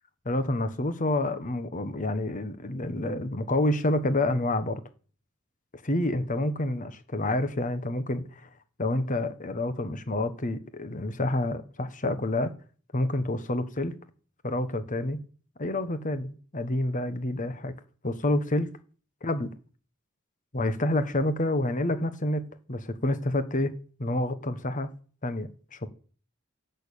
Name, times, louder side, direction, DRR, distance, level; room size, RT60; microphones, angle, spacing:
voice 1, 0.2-4.8 5.8-8.5 8.8-12.5 12.9-14.0 14.4-15.2 15.6-17.7 18.0-18.7 19.2-19.5 20.5-23.7 24.0-24.9 25.2-25.9, left 1 dB, 40° left, 1.3 m, -28 dB
16.0 x 6.7 x 8.5 m
head